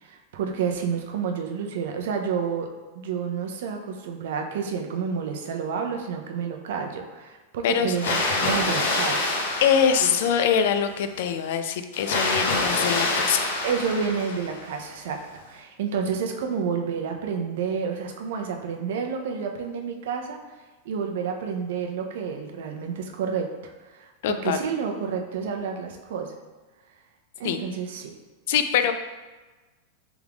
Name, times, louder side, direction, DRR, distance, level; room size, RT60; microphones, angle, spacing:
voice 1, 0.0-2.7 2.9-9.3 13.6-15.2 15.5-20.4 20.8-24.1 24.4-26.3 27.4-28.1, right 6 dB, 70° right, 3 dB, 0.6 m, -29 dB
voice 2, 7.6-7.9 9.6-13.4 24.2-24.6 27.4-27.6 28.5-28.9, left 8 dB, 60° left, 9 dB, 0.3 m, -23 dB
Water, 7.9-10.7 11.9-14.7, left 2 dB, 85° left, 0.9 m, -26 dB
3.5 x 3.5 x 3.5 m, 1.2 s
supercardioid pair, 165°, 0 cm